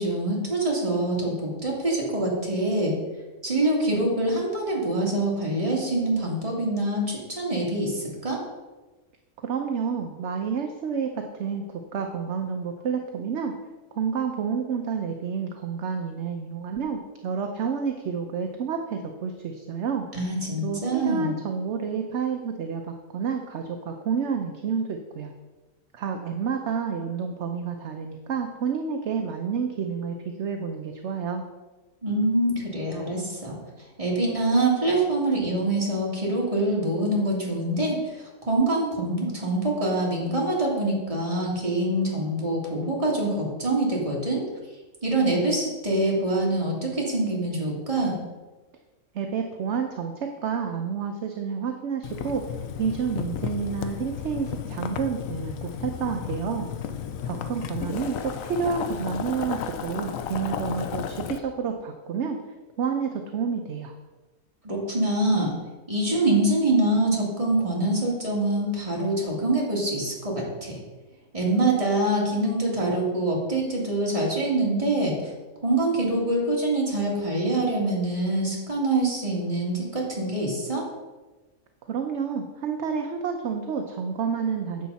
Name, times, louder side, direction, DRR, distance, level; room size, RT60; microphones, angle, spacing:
voice 1, 0.0-2.9 3.4-8.4 20.1-21.3 32.0-33.6 34.0-44.4 45.0-48.2 64.6-65.5 65.9-70.8 71.3-75.3 75.6-80.8, right 2 dB, 25° right, -3 dB, 2.4 m, -25 dB
voice 2, 9.4-13.5 13.9-20.1 20.6-25.3 25.9-31.4 49.1-52.4 52.8-56.7 57.2-62.4 62.8-63.9 81.9-84.9, right 6 dB, 55° right, 4 dB, 0.9 m, -29 dB
Boiling, 52.0-61.4, left 8 dB, 70° left, 1.0 m, -33 dB
10.5 x 7.4 x 4.1 m, 1.2 s
omnidirectional pair, 1.6 m